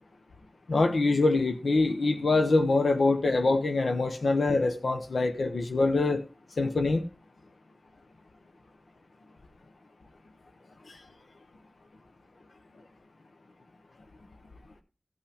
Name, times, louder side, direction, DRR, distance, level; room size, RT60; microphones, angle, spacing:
voice 1, 0.7-6.2 6.6-7.0 10.9-11.0, left 3 dB, 85° left, 6 dB, 1.0 m, -24 dB
16.0 x 5.9 x 5.0 m, 0.32 s
wide cardioid pair, 65°, 0 cm